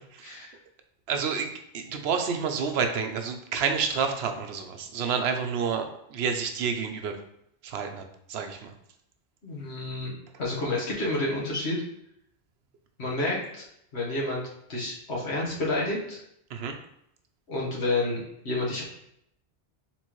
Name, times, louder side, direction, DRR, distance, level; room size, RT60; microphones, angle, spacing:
voice 1, 0.2-0.5 9.4-10.1 10.4-11.8 13.0-13.6 13.9-14.4 14.7-16.2 17.5-18.8, left 2 dB, 85° left, -4 dB, 1.6 m, -29 dB
voice 2, 1.1-7.2 7.6-8.0 8.3-8.7 16.5-16.8, right 6 dB, 80° right, 6 dB, 0.9 m, -29 dB
4.4 x 3.8 x 3.0 m, 0.76 s
omnidirectional pair, 1.1 m